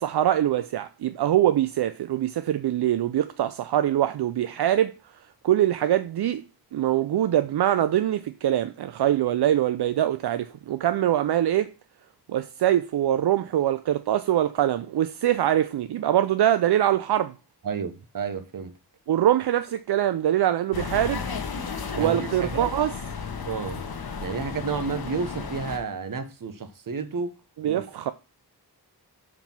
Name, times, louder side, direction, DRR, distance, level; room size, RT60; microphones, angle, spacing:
voice 1, 0.0-4.9 5.4-6.4 6.7-11.7 12.3-17.3 19.1-21.2 21.9-22.9 27.6-28.1, right 12 dB, 75° right, 0.5 m, -23 dB
voice 2, 17.6-18.7 21.9-22.7 23.5-23.8 24.2-27.3 27.6-27.8, right 5 dB, 55° right, 0.9 m, -31 dB
sound 1, 20.7-25.8, left 5 dB, 65° left, 1.2 m, -34 dB
5.4 x 4.9 x 5.8 m
wide cardioid pair, 120°, 40 cm